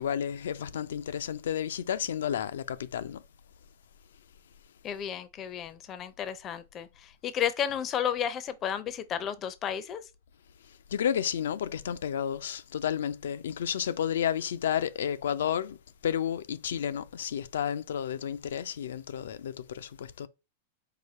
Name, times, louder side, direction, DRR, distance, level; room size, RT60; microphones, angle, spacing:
voice 1, 0.0-3.2 10.9-20.3, left 9 dB, 80° left, 0.4 m, -31 dB
voice 2, 4.8-10.0, left 9 dB, 30° left, 0.5 m, -32 dB
4.9 x 2.2 x 4.2 m
hypercardioid pair, 135°, 0 cm